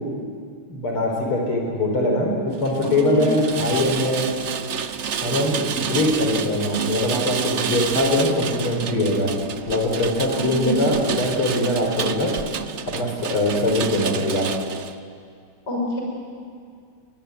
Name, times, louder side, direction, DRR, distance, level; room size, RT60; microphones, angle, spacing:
voice 1, 0.7-4.3 5.2-9.3 9.7-12.3 12.9-14.5, left 1 dB, 75° left, 1 dB, 5.1 m, -22 dB
Rain, 2.6-14.9, right 7 dB, 75° right, 0.6 m, -29 dB
voice 2, 2.8-3.2 10.4-10.8 15.7-16.0, equal, 50° left, -2 dB, 7.3 m, -27 dB
22.0 x 21.5 x 9.3 m, 2.2 s
omnidirectional pair, 2.4 m